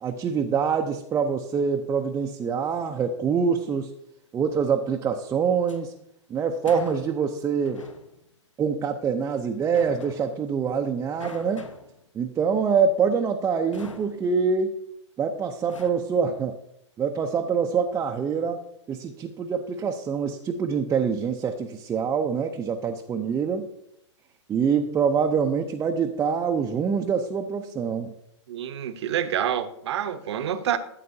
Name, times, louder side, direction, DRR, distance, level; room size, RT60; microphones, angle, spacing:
voice 1, 0.0-3.9 4.3-5.9 6.3-7.8 8.6-11.7 12.1-14.8 15.2-16.5 17.0-18.6 18.9-23.7 24.5-28.1, right 6 dB, 15° right, 3 dB, 0.6 m, -25 dB
sound 1, 5.4-5.8 6.6-7.3 7.6-8.2 9.7-10.6 11.2-12.1 13.7-14.3 15.7-15.9, left 4 dB, 90° left, 1.1 m, -43 dB
voice 2, 28.5-30.8, right 10 dB, 60° right, 10 dB, 1.0 m, -27 dB
13.5 x 7.5 x 2.7 m, 0.80 s
hypercardioid pair, 120°, 16 cm